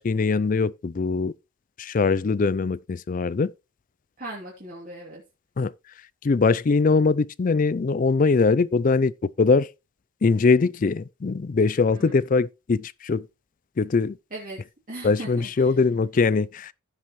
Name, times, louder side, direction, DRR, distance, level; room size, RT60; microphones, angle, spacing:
voice 1, 0.0-1.3 1.8-3.5 5.6-5.7 6.2-9.7 10.2-13.3 13.8-14.2 15.0-16.7, left 4 dB, 40° left, 0.4 m, -22 dB
voice 2, 4.2-5.2 11.9-12.2 14.3-14.6 14.9-15.7, right 1 dB, 40° right, 2.7 m, -38 dB
15.5 x 5.4 x 3.1 m
head